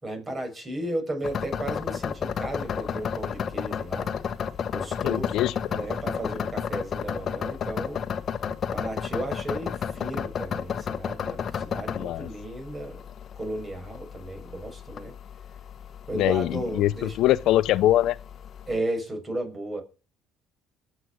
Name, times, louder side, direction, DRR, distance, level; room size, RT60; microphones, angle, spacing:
voice 1, 0.0-4.1 4.7-8.0 8.7-13.0 13.4-15.1 16.1-17.2 18.7-19.8, right 1 dB, 25° right, 7.0 m, -34 dB
sound 1, 1.2-18.8, left 7 dB, 45° left, 1.4 m, -32 dB
voice 2, 5.0-5.5 12.0-12.3 16.1-18.2, left 14 dB, 65° left, 0.6 m, -23 dB
20.5 x 8.0 x 6.5 m
supercardioid pair, 90°, 0 cm